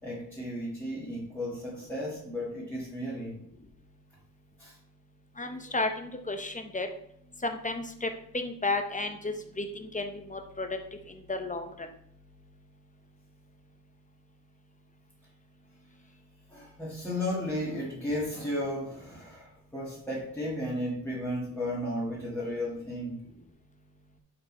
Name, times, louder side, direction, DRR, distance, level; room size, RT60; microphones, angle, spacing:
voice 1, 0.0-3.4 4.6-4.7 16.5-23.2, left 1 dB, 5° left, -8 dB, 1.6 m, -34 dB
voice 2, 5.4-6.9 7.4-10.7 11.1-11.6, left 2 dB, 20° left, 6 dB, 0.7 m, -33 dB
5.1 x 4.6 x 4.3 m, 0.70 s
wide cardioid pair, 115°, 36 cm